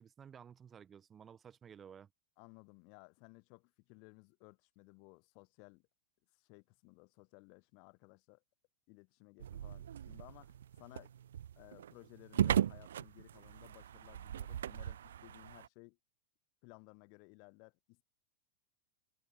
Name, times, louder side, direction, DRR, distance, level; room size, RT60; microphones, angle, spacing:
voice 1, 0.0-2.1, right 7 dB, 20° right, 1.3 m, -55 dB
voice 2, 2.4-5.9 6.4-8.4 8.9-11.1 11.6-16.0 16.6-18.0, left 37 dB, 45° left, 0.8 m, -59 dB
sound 1, 9.4-15.7, right 10 dB, 65° right, 0.3 m, -38 dB
figure-of-eight pair, 90°, 0 cm